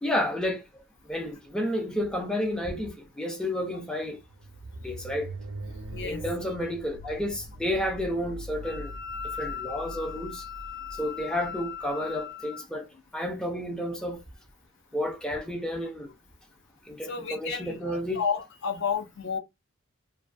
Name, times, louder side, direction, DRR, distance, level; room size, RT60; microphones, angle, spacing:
voice 1, 0.0-0.6 1.1-4.2 4.8-5.3 6.0-8.9 9.4-10.5 11.0-12.9 13.1-14.2 14.9-16.1 16.9-18.2, left 1 dB, 5° left, 0.3 m, -31 dB
sound 1, 3.9-12.2, right 1 dB, 80° right, 0.4 m, -42 dB
voice 2, 5.9-6.2 17.0-19.4, left 6 dB, 60° left, 0.6 m, -31 dB
Wind instrument woodwind instrument, 8.6-12.6, left 8 dB, 85° left, 1.2 m, -39 dB
2.6 x 2.3 x 2.3 m
head